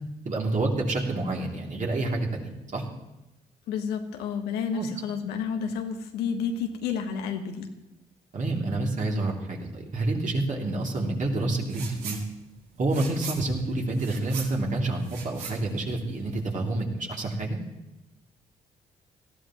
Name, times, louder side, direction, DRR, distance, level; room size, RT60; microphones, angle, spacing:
voice 1, 0.2-2.9 4.7-4.9 8.3-12.2 12.8-17.6, right 2 dB, 50° right, -1 dB, 2.9 m, -28 dB
voice 2, 3.7-7.7, left 6 dB, 80° left, 5 dB, 1.2 m, -30 dB
sound 1, 11.7-12.2 12.5-16.5, right 5 dB, 85° right, 1.9 m, -40 dB
18.5 x 13.5 x 3.1 m, 0.97 s
hypercardioid pair, 55°, 17 cm